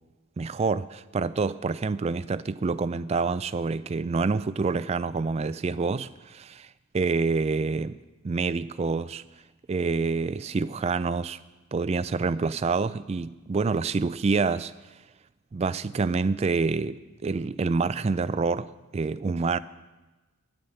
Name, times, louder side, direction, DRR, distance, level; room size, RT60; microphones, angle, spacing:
voice 1, 0.4-8.0 8.2-9.2 9.7-11.4 11.7-14.7 15.5-19.6, right 4 dB, 30° right, 0.3 m, -27 dB
9.8 x 8.8 x 7.8 m
head